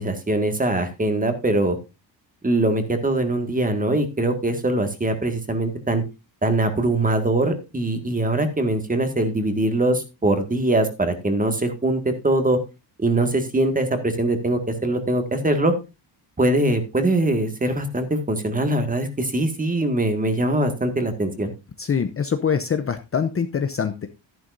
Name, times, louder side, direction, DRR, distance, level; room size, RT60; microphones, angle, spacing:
voice 1, 0.0-1.8 2.4-6.0 6.4-12.6 13.0-15.7 16.4-21.5, right 2 dB, 20° right, 7 dB, 1.9 m, -22 dB
voice 2, 21.8-24.1, left 7 dB, 30° left, 9 dB, 0.7 m, -24 dB
12.0 x 11.0 x 2.6 m, 0.26 s
cardioid pair, 135°, 46 cm